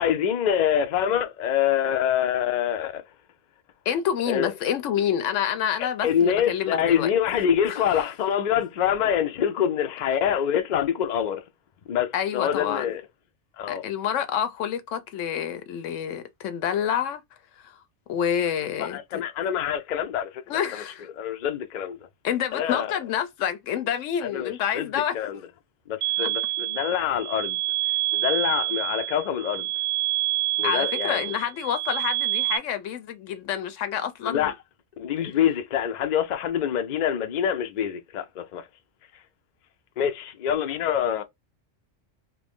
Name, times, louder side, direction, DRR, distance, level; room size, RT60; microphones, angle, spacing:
voice 1, 0.0-3.0 4.3-4.5 5.8-11.4 11.9-13.0 13.6-13.8 18.8-20.4 20.7-20.8 21.2-22.0 22.5-22.9 24.2-24.9 25.1-25.4 25.9-27.6 28.1-29.7 30.6-31.3 34.2-34.5 35.0-38.7 40.0-41.2, left 9 dB, 60° left, 0.5 m, -25 dB
voice 2, 3.9-7.1 7.6-7.8 12.1-12.8 13.7-17.2 17.6-17.8 18.1-19.0 20.5-21.1 22.2-25.1 26.2-26.3 30.6-34.5, left 9 dB, 85° left, 1.0 m, -28 dB
sound 1, 26.0-32.6, right 17 dB, 60° right, 0.6 m, -27 dB
3.0 x 2.6 x 3.5 m
omnidirectional pair, 1.2 m